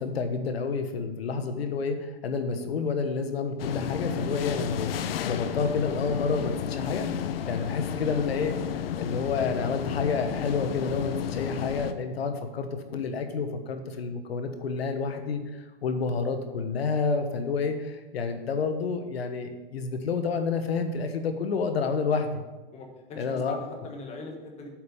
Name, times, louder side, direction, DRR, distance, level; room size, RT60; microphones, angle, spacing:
voice 1, 0.0-4.9 5.2-7.1 7.5-8.5 9.0-15.4 15.8-22.4 23.2-23.6, left 4 dB, 90° left, 7 dB, 1.3 m, -29 dB
sound 1, 3.6-11.9, left 9 dB, 70° left, 0.7 m, -32 dB
voice 2, 22.7-24.7, left 3 dB, 20° left, 3 dB, 1.4 m, -40 dB
7.9 x 5.3 x 6.8 m, 1.2 s
hypercardioid pair, 145°, 30 cm